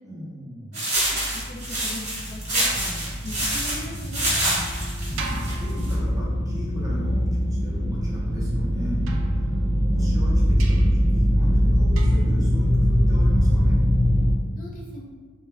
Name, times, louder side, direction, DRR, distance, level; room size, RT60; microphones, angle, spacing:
voice 1, 0.0-0.8 5.1-9.0 9.3-9.5 9.9-13.8, equal, 15° right, -6 dB, 0.6 m, -35 dB
voice 2, 0.7-1.0 1.3-2.0 2.3-4.3 14.6-15.0, left 1 dB, 40° left, -3 dB, 0.4 m, -40 dB
sound 1, 0.7-5.9, right 1 dB, 35° right, 1.0 m, -27 dB
sound 2, 1.0-14.3, equal, 85° left, 1.0 m, -22 dB
sound 3, 5.2-6.6 9.1-10.0 10.6-11.1 12.0-12.4, right 5 dB, 70° right, 0.3 m, -39 dB
2.2 x 2.2 x 3.1 m, 1.5 s
head